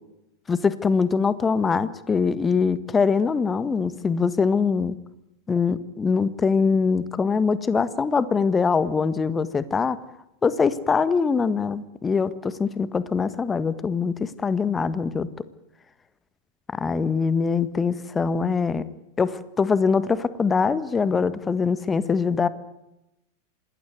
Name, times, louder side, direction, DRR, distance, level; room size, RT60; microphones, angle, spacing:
voice 1, 0.5-4.9 5.5-10.0 10.4-15.3 16.7-18.8 19.2-22.5, left 5 dB, 15° left, 15 dB, 1.6 m, -23 dB
26.5 x 19.5 x 9.3 m, 0.90 s
figure-of-eight pair, 90°, 0 cm